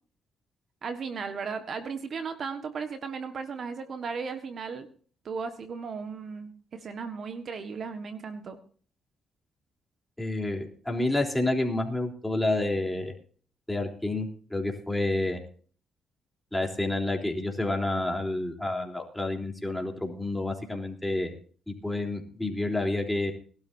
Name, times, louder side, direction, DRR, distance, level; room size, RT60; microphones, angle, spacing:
voice 1, 0.8-4.9 5.2-8.6, right 5 dB, 55° right, 8 dB, 1.5 m, -36 dB
voice 2, 10.2-13.1 13.7-15.4 16.5-21.3 21.7-23.3, left 2 dB, 5° left, 1 dB, 3.6 m, -29 dB
21.0 x 12.5 x 2.7 m, 0.43 s
cardioid pair, 90°, 0 cm